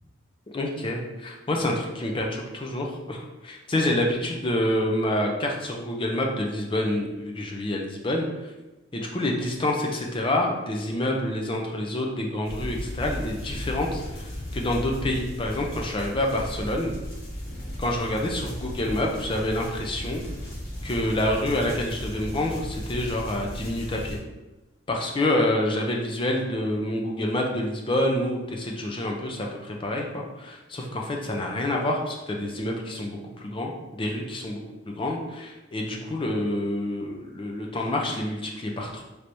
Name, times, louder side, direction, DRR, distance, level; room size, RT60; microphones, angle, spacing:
voice 1, 0.5-8.5 8.9-16.9 17.8-20.2 20.8-24.2 24.9-39.0, left 1 dB, 25° left, 1 dB, 0.4 m, -27 dB
sound 1, 12.4-24.2, equal, 40° left, 1.2 m, -36 dB
3.3 x 3.0 x 2.6 m, 1.1 s
head